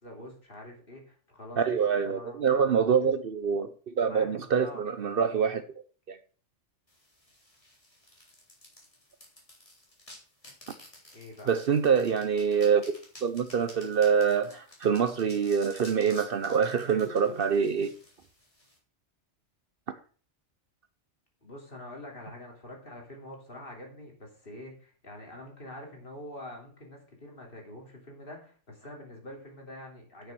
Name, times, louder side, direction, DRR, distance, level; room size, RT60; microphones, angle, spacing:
voice 1, 0.0-1.8 2.0-2.4 3.0-3.1 4.0-5.3 11.1-11.5 21.4-30.3, left 1 dB, 50° left, 3.2 m, -45 dB
voice 2, 1.6-5.6 6.1-6.2 11.5-12.8 13.2-17.9, right 6 dB, 55° right, 0.8 m, -25 dB
sound 1, 6.9-18.8, left 1 dB, 30° left, 3.4 m, -53 dB
9.4 x 6.8 x 6.0 m
omnidirectional pair, 1.2 m